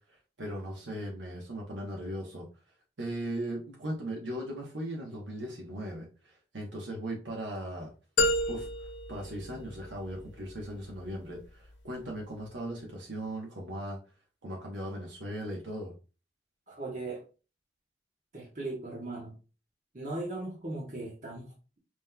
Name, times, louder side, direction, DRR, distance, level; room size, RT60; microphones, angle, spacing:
voice 1, 0.1-2.5 3.0-7.9 8.5-14.0 14.4-15.9, right 1 dB, 80° right, -2 dB, 1.0 m, -38 dB
sound 1, 8.2-10.2, left 1 dB, 70° left, 0.9 m, -30 dB
voice 2, 16.7-17.2 18.3-19.3 19.9-21.8, right 2 dB, 40° right, -4 dB, 1.1 m, -38 dB
5.4 x 3.1 x 2.2 m, 0.33 s
head